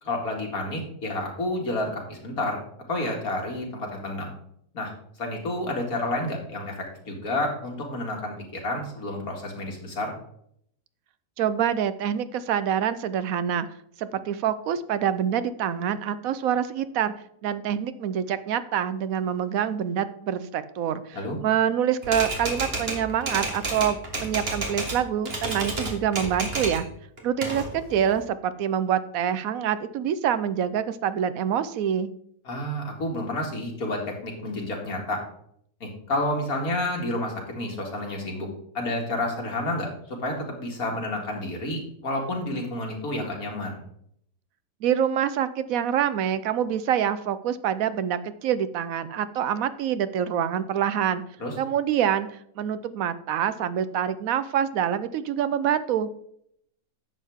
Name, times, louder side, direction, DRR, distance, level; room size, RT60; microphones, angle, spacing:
voice 1, 0.0-2.6 2.9-4.3 4.7-4.9 5.2-10.1 21.1-21.4 32.5-35.2 35.8-38.5 38.7-43.8 51.4-51.5, left 1 dB, 80° left, 0 dB, 2.6 m, -30 dB
voice 2, 11.4-13.7 14.0-17.1 17.4-26.9 27.2-32.1 44.8-51.2 51.6-56.1, right 9 dB, 75° right, 13 dB, 1.0 m, -26 dB
Typewriter, 22.0-25.0 25.3-26.9 27.2-28.2, right 2 dB, 45° right, 1.9 m, -31 dB
10.5 x 7.4 x 3.6 m, 0.69 s
omnidirectional pair, 1.5 m